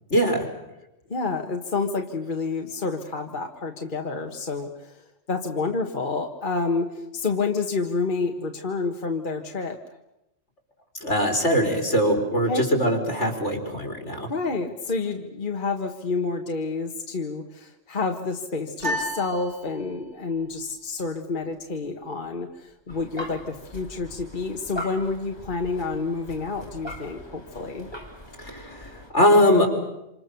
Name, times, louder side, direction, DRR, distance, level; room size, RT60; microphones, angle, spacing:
voice 1, 0.1-0.5 11.0-14.3 28.4-29.7, equal, 75° left, 4 dB, 4.6 m, -21 dB
voice 2, 1.1-9.8 12.5-12.7 14.3-27.9, left 4 dB, 45° left, 4 dB, 1.6 m, -29 dB
sound 1, 18.8-20.3, equal, 70° right, 6.1 m, -32 dB
sound 2, 22.9-29.1, equal, 20° left, 3.7 m, -41 dB
27.5 x 26.5 x 6.9 m, 0.88 s
omnidirectional pair, 1.2 m